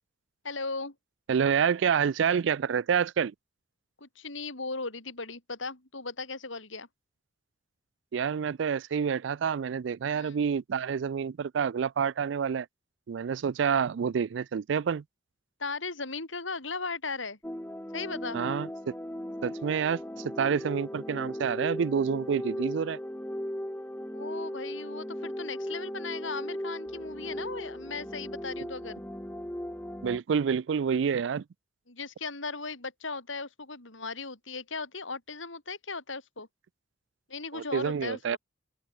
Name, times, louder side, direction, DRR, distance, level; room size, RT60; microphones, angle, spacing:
voice 1, 0.4-0.9 4.0-6.9 10.1-10.4 15.6-17.4 17.9-18.4 24.1-29.0 31.9-36.5 37.3-38.4, left 4 dB, 85° left, 4.8 m, -37 dB
voice 2, 1.3-3.3 8.1-12.7 13.1-15.0 18.3-18.9 19.4-23.0 30.0-31.4 37.5-38.4, right 7 dB, 70° right, 0.4 m, -28 dB
sound 1, 17.4-30.2, equal, 10° left, 1.3 m, -37 dB
open air
head